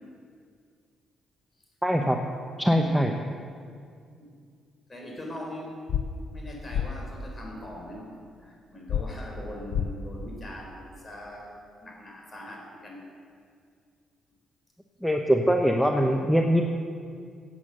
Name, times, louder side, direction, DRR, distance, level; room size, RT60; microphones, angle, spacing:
voice 1, 1.8-2.2 2.6-3.1 15.0-16.6, equal, ahead, 3 dB, 0.9 m, -22 dB
voice 2, 2.7-3.1 4.2-4.3 4.9-5.8 6.3-8.1 8.4-13.0, left 1 dB, 30° left, 0 dB, 4.0 m, -41 dB
sound 1, 5.9-6.0 6.7-6.9 8.9-9.0 9.7-9.9, left 9 dB, 65° left, 0.7 m, -26 dB
16.0 x 8.3 x 6.5 m, 2.2 s
cardioid pair, 90°, 0 cm